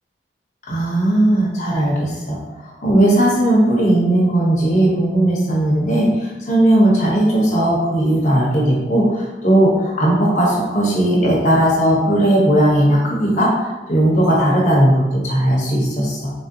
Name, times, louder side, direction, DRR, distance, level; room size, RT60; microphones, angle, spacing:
voice 1, 0.7-16.3, right 1 dB, 40° left, -4 dB, 0.8 m, -17 dB
3.3 x 2.6 x 2.6 m, 1.1 s
head